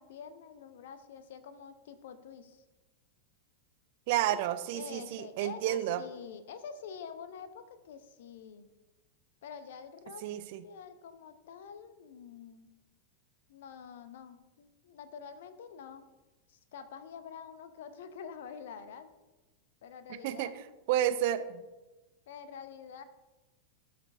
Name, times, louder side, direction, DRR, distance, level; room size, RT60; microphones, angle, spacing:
voice 1, 0.0-2.6 4.3-4.4 4.7-8.7 9.4-10.3 10.6-12.7 13.5-16.0 16.5-19.1 19.8-20.6 22.3-23.0, left 7 dB, 55° left, 11 dB, 0.6 m, -47 dB
voice 2, 4.1-6.0 10.2-10.6 20.2-21.6, right 12 dB, 50° right, 12 dB, 0.4 m, -31 dB
13.0 x 5.9 x 2.5 m, 1.1 s
figure-of-eight pair, 90°, 0 cm